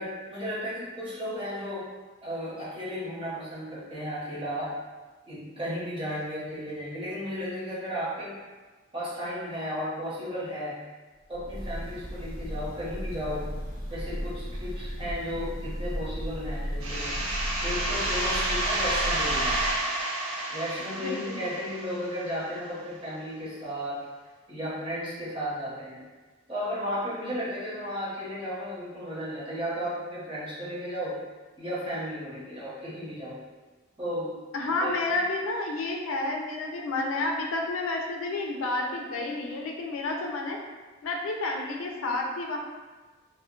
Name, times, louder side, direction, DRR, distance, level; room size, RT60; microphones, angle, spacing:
voice 1, 0.0-1.9 2.2-4.8 5.2-8.3 8.9-10.8 11.3-13.5 13.9-17.2 17.6-19.6 20.5-24.0 24.5-26.0 26.5-31.2 31.6-33.4 34.0-34.4 34.8-35.0, equal, 25° right, -9 dB, 0.9 m, -34 dB
Breathing / Bird, 11.3-19.8, equal, 45° right, 1.2 m, -35 dB
sound 1, 16.8-22.3, right 1 dB, 85° right, 0.5 m, -30 dB
voice 2, 21.0-21.4 34.5-40.6 41.0-42.6, left 2 dB, 80° left, 1 dB, 0.4 m, -30 dB
2.2 x 2.1 x 3.6 m, 1.3 s
head